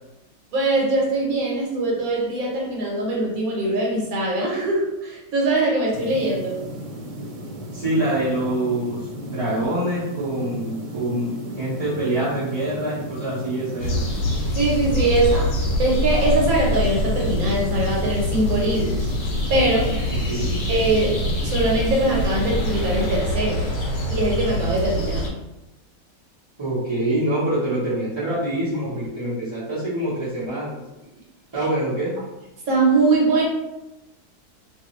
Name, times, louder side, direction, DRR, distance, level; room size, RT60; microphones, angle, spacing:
voice 1, 0.5-6.6 14.6-15.5 15.8-19.1 19.5-19.9 20.7-23.7 24.1-25.3 32.7-33.4, right 2 dB, 60° right, -3 dB, 1.3 m, -22 dB
sound 1, 5.9-23.2, equal, 80° right, 1.4 m, -35 dB
voice 2, 7.7-14.0 20.1-20.6 26.6-30.8 31.5-32.1, right 1 dB, 20° right, -13 dB, 0.8 m, -25 dB
sound 2, 13.8-25.3, left 1 dB, 80° left, 1.4 m, -25 dB
2.8 x 2.6 x 3.0 m, 0.97 s
omnidirectional pair, 1.8 m